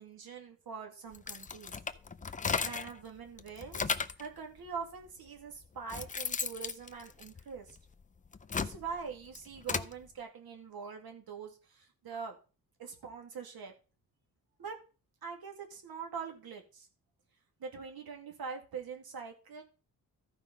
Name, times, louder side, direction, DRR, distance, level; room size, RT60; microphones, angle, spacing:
voice 1, 0.0-1.8 2.6-7.8 8.5-12.4 12.8-13.7 14.6-14.8 15.2-16.9 17.6-19.6, right 6 dB, 80° right, 3 dB, 2.3 m, -43 dB
sound 1, 1.1-3.0 3.4-4.3 5.1-5.2 5.6-7.8 8.3-9.9, left 5 dB, 20° left, 0.4 m, -35 dB
14.0 x 5.0 x 5.3 m, 0.35 s
wide cardioid pair, 150°, 36 cm